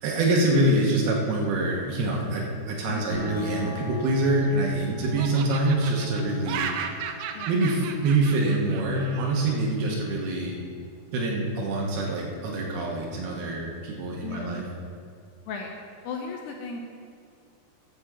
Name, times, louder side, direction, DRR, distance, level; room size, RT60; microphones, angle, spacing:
voice 1, 0.0-6.7 7.5-10.6 11.1-14.7, right 2 dB, 70° right, -2 dB, 2.8 m, -25 dB
sound 1, 3.1-13.1, equal, 55° left, 0.7 m, -45 dB
Laughter, 4.0-4.8 5.2-9.5, right 7 dB, 85° right, 2.4 m, -36 dB
voice 2, 14.2-14.6 15.5-15.7 16.0-16.8, left 4 dB, 80° left, 1 dB, 2.6 m, -36 dB
11.5 x 5.2 x 7.3 m, 2.3 s
omnidirectional pair, 5.3 m